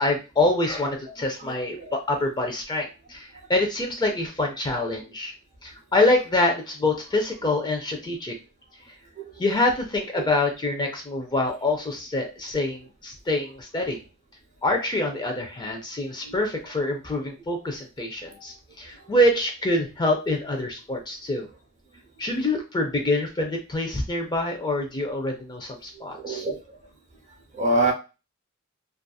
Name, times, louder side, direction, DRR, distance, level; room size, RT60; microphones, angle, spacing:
voice 1, 0.0-5.3 5.6-8.3 9.4-14.0 14.6-21.5 22.2-26.5, left 2 dB, 20° left, 3 dB, 0.4 m, -25 dB
voice 2, 1.4-1.9 9.2-9.3 10.2-10.3 16.2-16.3 17.1-17.2 18.3-18.4 26.0-26.6 27.5-27.9, right 2 dB, 35° right, 1 dB, 0.7 m, -27 dB
2.7 x 2.4 x 2.3 m, 0.30 s
head